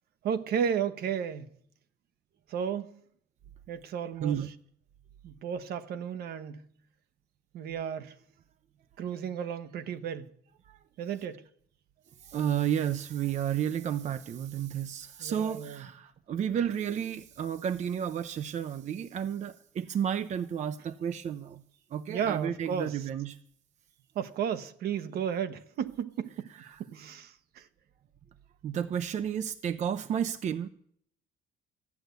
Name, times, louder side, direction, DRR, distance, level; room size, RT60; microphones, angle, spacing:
voice 1, 0.2-1.5 2.5-3.0 3.7-4.4 5.2-6.6 7.5-8.1 9.0-10.3 11.0-11.4 15.2-15.9 22.1-23.1 24.1-26.5 26.8-27.7, right 8 dB, 65° right, 1.0 m, -33 dB
voice 2, 12.2-21.6 21.9-23.4 26.7-26.8 28.6-30.7, right 9 dB, 45° right, 0.6 m, -32 dB
13.0 x 8.0 x 8.0 m
cardioid pair, 110°, 17 cm